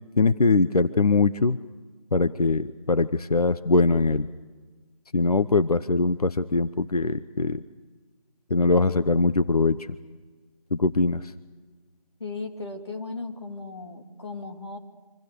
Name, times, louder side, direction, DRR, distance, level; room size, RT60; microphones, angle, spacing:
voice 1, 0.2-1.6 2.1-4.3 5.1-7.6 8.5-9.8 10.7-11.3, left 3 dB, 85° left, 14 dB, 0.9 m, -22 dB
voice 2, 12.2-14.8, left 3 dB, 45° left, 3 dB, 2.8 m, -36 dB
26.0 x 26.0 x 6.8 m, 1.4 s
figure-of-eight pair, 175°, 19 cm